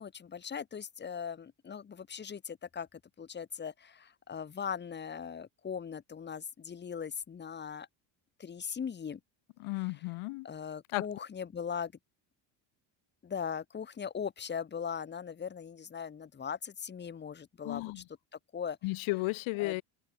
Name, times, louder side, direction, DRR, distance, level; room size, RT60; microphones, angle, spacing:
voice 1, 0.0-7.9 8.4-9.2 9.8-9.9 10.4-11.9 13.2-18.0 18.5-18.8 19.6-19.8, left 7 dB, 20° left, 1.4 m, -39 dB
voice 2, 9.6-10.5 10.9-11.0 17.6-18.0 18.8-19.8, left 23 dB, 85° left, 2.9 m, -34 dB
cardioid pair, 150°, 46 cm